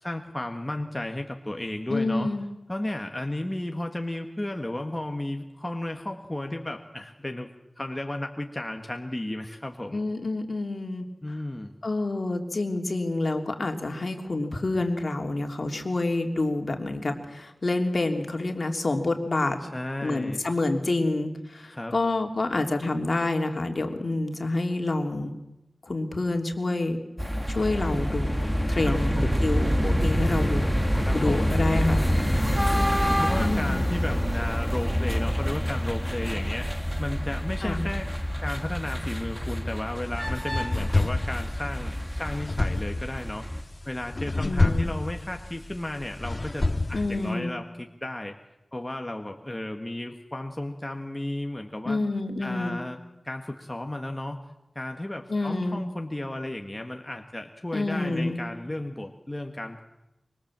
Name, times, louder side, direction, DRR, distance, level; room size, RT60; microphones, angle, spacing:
voice 1, 0.0-2.3 2.7-7.5 7.8-10.0 11.2-11.7 19.7-20.4 21.7-21.9 28.8-29.4 31.0-31.5 31.8-32.6 33.2-38.1 38.4-43.5 43.9-48.4 48.7-52.0 52.4-53.0 53.3-54.5 54.8-59.8, left 1 dB, 20° left, 4 dB, 1.7 m, -34 dB
voice 2, 1.9-2.4 9.9-11.0 11.8-19.6 20.0-25.3 25.8-27.0 27.5-28.4 28.7-30.7 31.1-32.0 32.5-32.7 33.4-34.0 37.6-37.9 44.4-44.9 46.9-47.5 51.8-52.8 55.3-55.8 57.7-58.4, left 2 dB, 55° left, 4 dB, 3.2 m, -28 dB
sound 1, 27.2-43.6, equal, ahead, 1.8 m, -27 dB
sound 2, 40.0-47.3, left 2 dB, 35° left, 1.7 m, -29 dB
25.5 x 24.5 x 7.6 m, 0.93 s
wide cardioid pair, 85°, 0 cm